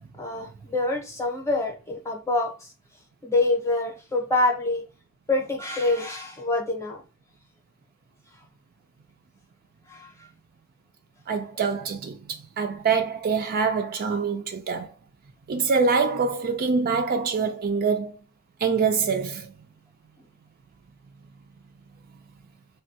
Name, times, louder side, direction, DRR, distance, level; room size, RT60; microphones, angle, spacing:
voice 1, 0.2-2.7 3.2-4.8 5.3-7.0 9.9-10.3 20.2-20.3, left 2 dB, 15° left, 0.7 m, -26 dB
voice 2, 11.3-14.9 15.5-18.1 18.6-19.5, right 5 dB, 40° right, 0.3 m, -25 dB
3.2 x 2.2 x 2.7 m
head